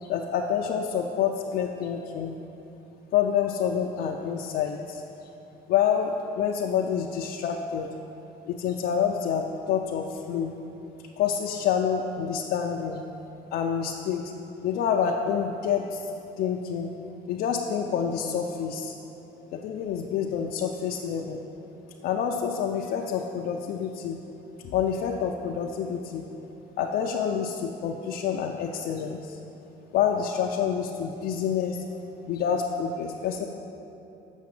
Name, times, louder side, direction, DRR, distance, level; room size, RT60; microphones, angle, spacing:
voice 1, 0.0-2.4 3.1-5.0 5.7-7.9 8.5-10.6 11.2-13.0 13.5-14.3 14.6-16.1 16.4-16.9 17.3-18.9 19.5-21.4 22.0-24.2 24.6-26.3 26.8-29.4 29.9-31.8 32.3-33.4, left 8 dB, 70° left, 0 dB, 0.5 m, -27 dB
7.2 x 5.7 x 7.5 m, 3.0 s
cardioid pair, 110°, 17 cm